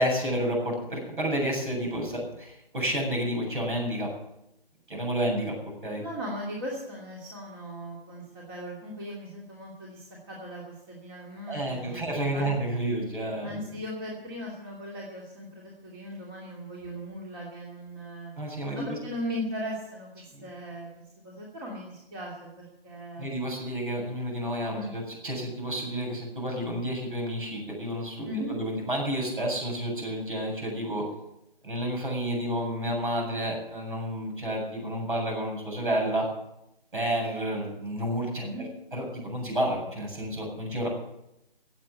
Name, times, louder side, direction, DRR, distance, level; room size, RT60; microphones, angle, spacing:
voice 1, 0.0-4.1 4.9-5.5 5.8-6.0 11.5-13.6 18.4-19.0 20.3-20.5 23.2-31.1 31.6-36.3 36.9-40.9, equal, 60° right, 1 dB, 7.8 m, -30 dB
voice 2, 6.0-12.5 13.4-18.3 18.7-20.9 21.2-22.5 22.8-23.3 24.7-24.9 28.3-28.6 38.4-38.7, equal, 25° right, -3 dB, 2.7 m, -38 dB
17.5 x 8.0 x 8.2 m, 0.85 s
figure-of-eight pair, 150°, 29 cm